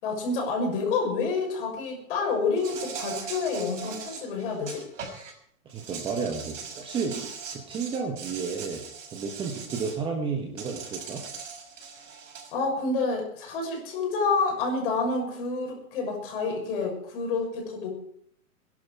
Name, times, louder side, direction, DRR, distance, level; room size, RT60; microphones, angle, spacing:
voice 1, 0.0-4.8 12.5-17.9, left 4 dB, 40° left, 1 dB, 6.2 m, -28 dB
Insect, 2.6-5.3 5.7-10.0 10.6-12.5, right 6 dB, 60° right, 6.0 m, -40 dB
voice 2, 5.6-8.8 9.1-11.2, right 5 dB, 10° right, 2 dB, 1.3 m, -32 dB
21.5 x 11.5 x 4.7 m, 0.67 s
hypercardioid pair, 155°, 41 cm